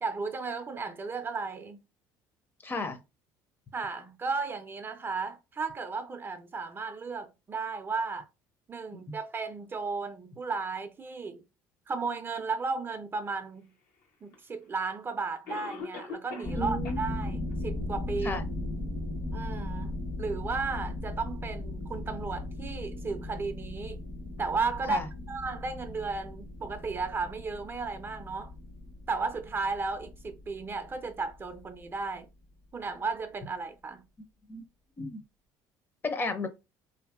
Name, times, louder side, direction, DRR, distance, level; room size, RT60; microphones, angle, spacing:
voice 1, 0.0-1.8 3.7-8.3 8.7-11.4 11.9-13.7 14.2-18.4 19.3-19.9 20.2-24.0 24.4-25.0 25.3-28.5 29.1-32.3 32.7-34.0, right 4 dB, 30° right, 0.4 m, -34 dB
voice 2, 2.6-3.0 8.9-9.2 16.6-17.0 18.2-18.5 24.9-25.1 34.5-34.6 35.0-35.2 36.0-36.5, left 2 dB, 25° left, 0.5 m, -33 dB
Cough, 14.3-14.4 15.5-16.6 16.8-17.0 17.5-17.6 18.2-18.3, left 4 dB, 80° left, 0.8 m, -40 dB
sound 1, 16.4-32.2, left 2 dB, 50° left, 0.8 m, -38 dB
2.7 x 2.6 x 2.4 m
supercardioid pair, 95°, 8 cm